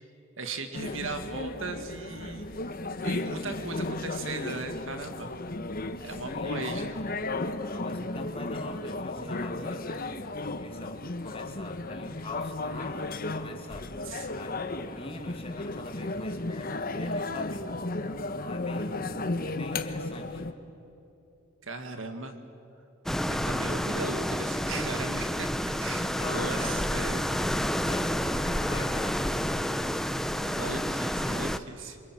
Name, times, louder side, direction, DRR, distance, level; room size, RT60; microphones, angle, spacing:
voice 1, 0.4-2.5 3.0-5.3 6.0-6.9 14.1-14.3 21.6-22.4 23.3-25.5 25.8-27.5 30.4-32.0, right 3 dB, 65° right, 7 dB, 2.1 m, -37 dB
sound 1, 0.7-20.5, left 2 dB, 45° left, 1.2 m, -34 dB
voice 2, 6.1-7.0 7.7-13.9 14.3-17.6 18.4-20.5 25.8-26.7 27.8-29.8, left 2 dB, 30° left, 4 dB, 2.5 m, -42 dB
sound 2, 23.1-31.6, equal, ahead, 0.7 m, -29 dB
28.0 x 25.5 x 7.8 m, 2.9 s
head